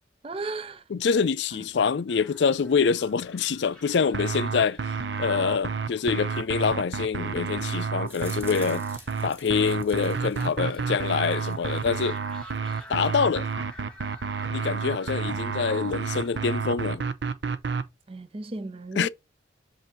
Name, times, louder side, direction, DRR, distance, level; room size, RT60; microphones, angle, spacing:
voice 1, 0.2-0.8 18.1-19.1, right 2 dB, 30° right, 0.5 m, -34 dB
voice 2, 0.9-4.8 5.2-8.8 9.2-12.2 12.9-13.5 14.5-17.0 19.0-19.1, left 5 dB, 75° left, 0.4 m, -25 dB
sound 1, 2.1-16.6, left 1 dB, 5° left, 1.4 m, -49 dB
sound 2, 4.1-17.8, right 5 dB, 75° right, 0.7 m, -30 dB
sound 3, 8.1-11.9 12.2-13.0, right 2 dB, 15° right, 1.0 m, -48 dB
7.7 x 2.7 x 5.8 m
head